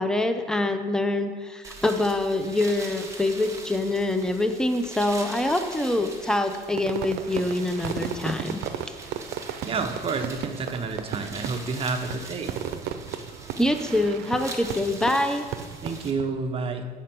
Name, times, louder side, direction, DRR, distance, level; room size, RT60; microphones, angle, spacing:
voice 1, 0.0-8.6 13.6-15.5, left 1 dB, 5° left, 7 dB, 0.6 m, -25 dB
sound 1, 1.6-16.1, right 3 dB, 20° right, 1.2 m, -42 dB
Fireworks, 6.8-16.3, right 9 dB, 80° right, 0.5 m, -35 dB
voice 2, 9.7-12.5 15.8-16.9, right 4 dB, 35° right, 5 dB, 0.8 m, -29 dB
7.7 x 5.0 x 5.9 m, 1.5 s
cardioid pair, 110°, 17 cm